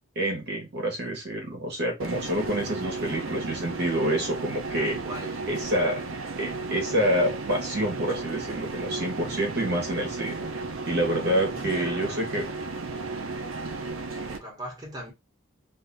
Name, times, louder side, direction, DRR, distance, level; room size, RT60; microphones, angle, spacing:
voice 1, 0.2-5.0 5.5-6.0 6.4-10.5 10.8-12.5, right 1 dB, 50° right, 0.9 m, -27 dB
sound 1, 2.0-14.4, right 3 dB, 70° right, 0.6 m, -34 dB
voice 2, 2.9-3.4 4.7-5.5 11.3-12.4 14.3-15.1, equal, 20° right, 1.1 m, -40 dB
2.6 x 2.3 x 3.8 m
head